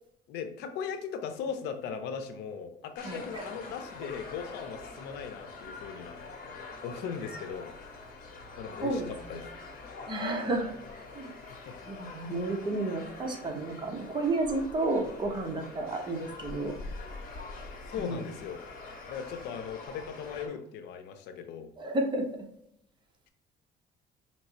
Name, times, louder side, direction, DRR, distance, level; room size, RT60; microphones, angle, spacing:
voice 1, 0.3-7.7 8.6-9.5 11.7-11.8 12.3-12.4 17.9-18.6 19.1-21.7, left 7 dB, 85° left, 7 dB, 0.7 m, -38 dB
sound 1, 3.0-20.5, left 3 dB, 55° left, 1.7 m, -45 dB
voice 2, 3.0-3.5 8.8-9.4 10.1-10.7 11.1-11.3 11.9-16.8 18.0-18.2 21.8-22.4, right 2 dB, 25° right, 2 dB, 1.0 m, -32 dB
5.1 x 3.0 x 2.8 m, 0.75 s
cardioid pair, 110°, 17 cm